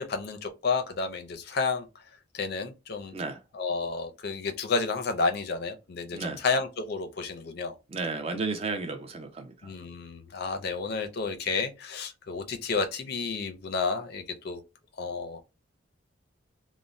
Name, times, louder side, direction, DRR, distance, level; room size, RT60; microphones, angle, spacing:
voice 1, 0.0-1.9 2.3-3.2 3.5-7.7 9.6-14.6 15.0-15.4, left 4 dB, 50° left, 0.4 m, -31 dB
voice 2, 7.9-9.7, right 3 dB, 30° right, 0.4 m, -33 dB
2.5 x 2.0 x 3.0 m
head